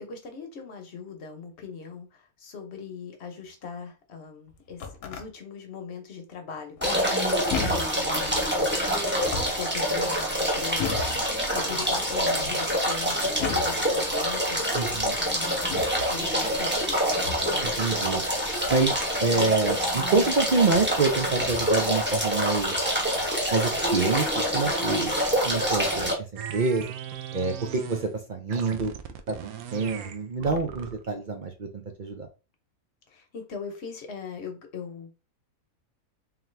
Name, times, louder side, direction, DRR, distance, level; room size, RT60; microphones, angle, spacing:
voice 1, 0.0-9.3 9.6-15.7 16.1-17.0 33.1-35.2, left 5 dB, 55° left, 4 dB, 1.1 m, -40 dB
sound 1, 4.5-5.3 6.8-7.2 7.5-8.0 9.1-9.7 10.8-11.2 12.0-12.5 13.4-13.8 14.7-15.1 15.7-16.0 17.2-17.6 19.7-19.8 20.6-21.0 21.3-21.8, left 5 dB, 80° left, 1.2 m, -34 dB
sound 2, 6.8-26.1, equal, 10° right, 0.9 m, -26 dB
voice 2, 14.7-15.2 17.6-18.2 18.7-18.9 19.2-22.7 23.5-25.1 25.4-26.8 27.3-28.9 29.3-29.4 29.7-32.3, right 4 dB, 60° right, 4 dB, 0.5 m, -26 dB
sound 3, 26.4-28.1 28.5-31.1, right 9 dB, 85° right, 1.0 m, -38 dB
3.9 x 2.9 x 3.2 m, 0.31 s
omnidirectional pair, 1.5 m